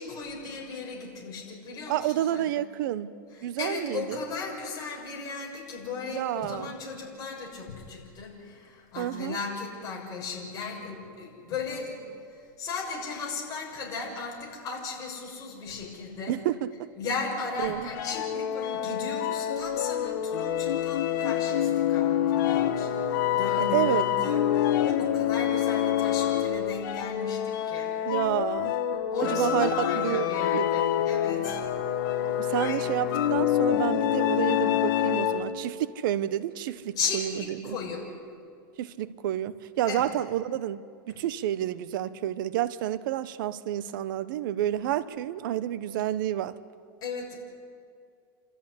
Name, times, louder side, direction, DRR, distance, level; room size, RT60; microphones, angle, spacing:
voice 1, 0.0-2.5 3.3-16.4 17.0-28.0 29.1-31.7 32.6-32.8 37.0-38.1 39.9-40.1 47.0-47.4, left 4 dB, 30° left, -2 dB, 6.5 m, -36 dB
voice 2, 1.9-3.1 3.4-4.2 6.1-6.7 9.0-9.4 16.3-16.7 17.6-17.9 23.6-24.0 28.0-28.7 29.2-30.7 32.3-37.8 38.8-46.6, right 12 dB, 65° right, 15 dB, 1.0 m, -29 dB
sound 1, 17.9-35.6, left 10 dB, 65° left, 1.6 m, -27 dB
29.0 x 14.0 x 9.9 m, 2.3 s
supercardioid pair, 145°, 12 cm